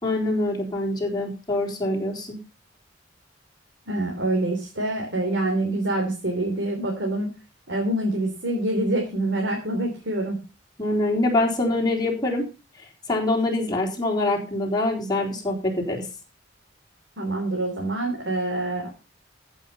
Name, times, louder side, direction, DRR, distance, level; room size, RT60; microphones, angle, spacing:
voice 1, 0.0-2.4 10.8-12.4 13.1-16.1, left 2 dB, 20° left, -2 dB, 3.8 m, -24 dB
voice 2, 3.9-7.3 7.7-10.4 17.2-18.9, right 1 dB, 70° right, 0 dB, 3.3 m, -26 dB
14.5 x 7.2 x 5.5 m, 0.32 s
head